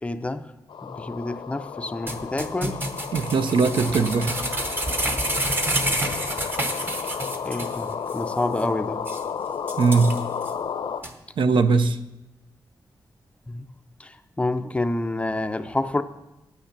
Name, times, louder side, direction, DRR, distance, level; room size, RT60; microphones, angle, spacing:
voice 1, 0.0-0.5 0.8-2.8 7.4-9.0 13.5-13.7 14.0-16.0, left 2 dB, 15° left, 9 dB, 0.5 m, -28 dB
sound 1, 0.7-11.0, left 7 dB, 75° left, 0.7 m, -32 dB
sound 2, 2.1-7.8 8.1-8.2 8.6-8.7 9.1-9.2 9.7-10.5 11.0-11.1, right 1 dB, 25° right, 0.9 m, -28 dB
voice 2, 3.1-4.4 9.8-10.2 11.4-12.0, right 4 dB, 70° right, 11 dB, 0.6 m, -20 dB
9.9 x 8.8 x 6.7 m, 0.98 s
wide cardioid pair, 170°, 9 cm